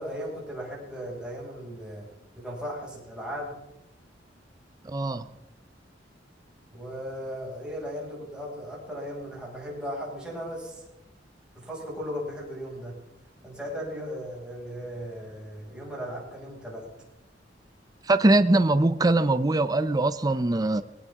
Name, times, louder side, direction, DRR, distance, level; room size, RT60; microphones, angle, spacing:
voice 1, 0.0-2.1 2.3-3.6 6.7-10.8 11.5-13.0 13.4-16.9, equal, 5° right, 6.1 m, -37 dB
voice 2, 4.8-5.3 18.0-20.8, right 2 dB, 20° right, 0.5 m, -22 dB
21.0 x 18.5 x 3.6 m
head